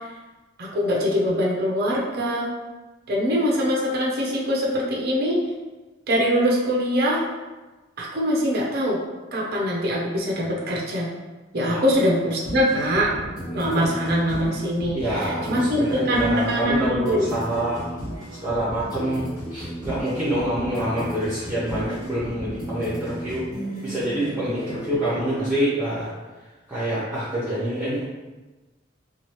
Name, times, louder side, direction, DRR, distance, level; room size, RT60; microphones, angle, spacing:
voice 1, 0.6-2.5 3.1-5.4 6.1-7.2 8.0-9.0 9.3-11.1 11.5-13.1 13.5-17.3, equal, 50° right, -3 dB, 0.6 m, -23 dB
sound 1, 12.4-25.4, equal, 45° left, 1.4 m, -34 dB
voice 2, 14.9-17.8 18.4-23.4 23.8-26.1 26.7-28.0, right 1 dB, 10° right, -10 dB, 0.8 m, -26 dB
2.9 x 2.4 x 3.0 m, 1.2 s
head